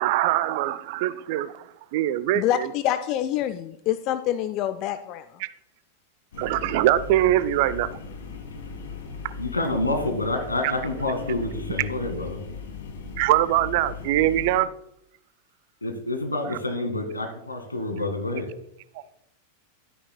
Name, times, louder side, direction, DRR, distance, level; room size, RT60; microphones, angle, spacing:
voice 1, 0.0-1.6 1.9-2.7 5.4-5.5 6.4-7.9 13.2-14.7, right 14 dB, 50° right, 17 dB, 0.5 m, -22 dB
voice 2, 2.3-5.3, left 12 dB, 40° left, 11 dB, 0.5 m, -26 dB
sound 1, 6.3-14.6, left 5 dB, 60° left, 2.0 m, -38 dB
voice 3, 9.4-12.4 15.8-18.5, left 2 dB, 80° left, 4 dB, 1.8 m, -28 dB
12.0 x 9.6 x 2.2 m, 0.78 s
figure-of-eight pair, 90°, 0 cm